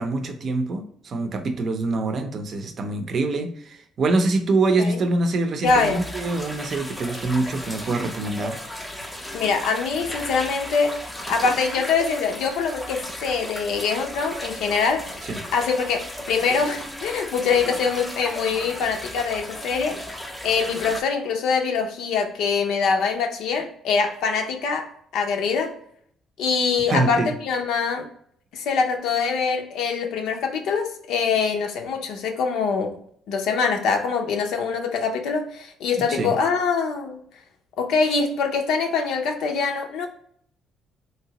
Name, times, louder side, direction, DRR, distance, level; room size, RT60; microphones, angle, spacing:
voice 1, 0.0-8.6 15.3-15.4 26.9-27.3 36.1-36.3, right 3 dB, 45° right, 0.5 m, -25 dB
voice 2, 5.6-6.0 9.3-11.0 11.3-20.0 20.4-25.7 26.4-28.1 28.5-33.0 33.3-37.2 37.8-40.1, left 5 dB, 80° left, 0.6 m, -24 dB
sound 1, 5.6-21.0, left 1 dB, 5° left, 0.5 m, -35 dB
3.2 x 2.8 x 2.8 m
cardioid pair, 125°, 0 cm